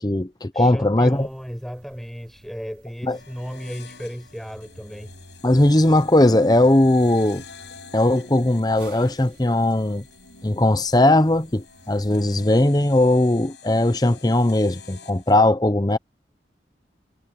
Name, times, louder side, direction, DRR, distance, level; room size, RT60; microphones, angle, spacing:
voice 1, 0.0-1.3 3.0-3.2 5.4-7.4 7.9-10.0 10.4-16.0, left 1 dB, 20° left, 0.8 m, -18 dB
voice 2, 0.5-5.1, equal, ahead, 6.0 m, -35 dB
sound 1, 1.1-12.4, right 1 dB, 80° right, 5.3 m, -51 dB
sound 2, 3.1-15.4, left 4 dB, 80° left, 7.1 m, -46 dB
head